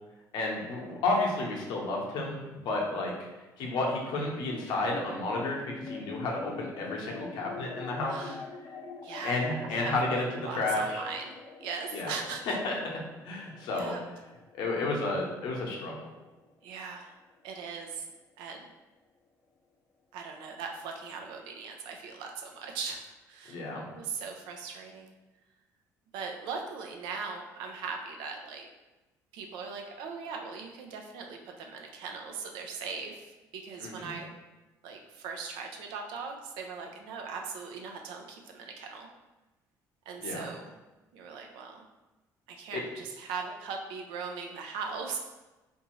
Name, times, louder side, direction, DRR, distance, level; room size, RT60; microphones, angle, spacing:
voice 1, 0.3-3.1 3.6-8.3 9.2-11.0 11.9-12.1 12.5-13.0 13.2-14.0 14.5-15.9 23.5-23.8 33.8-34.2 40.2-40.5 42.7-42.8, left 2 dB, 75° left, -1 dB, 0.8 m, -31 dB
sound 1, 4.5-17.1, left 4 dB, 45° left, 0.4 m, -45 dB
voice 2, 8.1-8.5 9.0-12.6 13.7-14.0 16.6-17.2 17.4-18.0 18.4-18.7 20.1-23.0 23.3-23.6 23.9-25.1 26.1-28.7 29.3-34.4 34.8-39.1 40.1-40.7 41.1-41.8 42.5-45.2, right 5 dB, 85° right, 2 dB, 0.5 m, -39 dB
3.5 x 2.6 x 3.0 m, 1.1 s
supercardioid pair, 85°, 8 cm